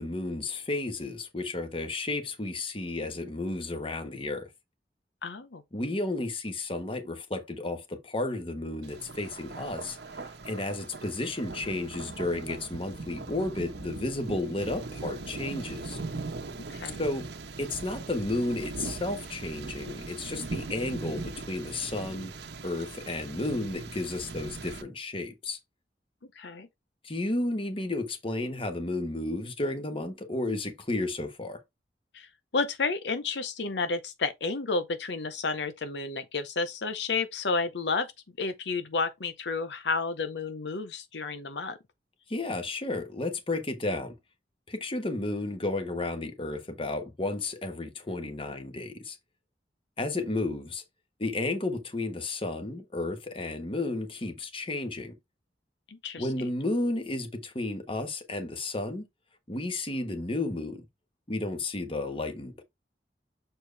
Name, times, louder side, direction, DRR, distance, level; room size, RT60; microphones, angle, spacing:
voice 1, 0.0-4.5 5.7-10.0 10.4-16.0 17.0-17.3 17.6-22.3 22.6-25.6 27.0-31.6 42.3-44.2 44.7-49.2 50.0-50.8 51.2-55.1 56.2-59.0 59.5-60.8 61.3-62.6, left 2 dB, 30° left, 1.2 m, -32 dB
voice 2, 5.2-5.6 16.7-17.0 26.4-26.7 32.1-38.1 38.4-41.8 55.9-56.3, left 4 dB, 80° left, 0.8 m, -31 dB
Thunder, 8.8-24.8, right 3 dB, 75° right, 1.1 m, -40 dB
6.7 x 4.5 x 3.3 m
head